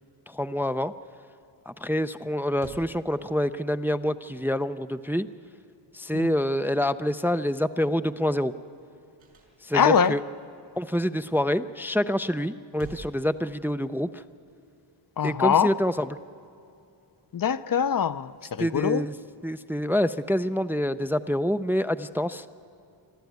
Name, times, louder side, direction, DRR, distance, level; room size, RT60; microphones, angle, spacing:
voice 1, 0.3-0.9 1.7-5.3 5.9-8.5 9.6-10.2 10.8-14.2 15.2-16.2 18.6-19.2 19.4-22.5, equal, 5° right, 11 dB, 0.4 m, -26 dB
sound 1, 2.6-3.7 9.2-10.1 12.4-14.0, right 4 dB, 80° right, 5.2 m, -48 dB
voice 2, 9.7-10.1 15.2-15.7 17.3-19.0, left 7 dB, 45° left, 14 dB, 0.7 m, -23 dB
26.5 x 13.0 x 9.4 m, 2.7 s
wide cardioid pair, 110°, 48 cm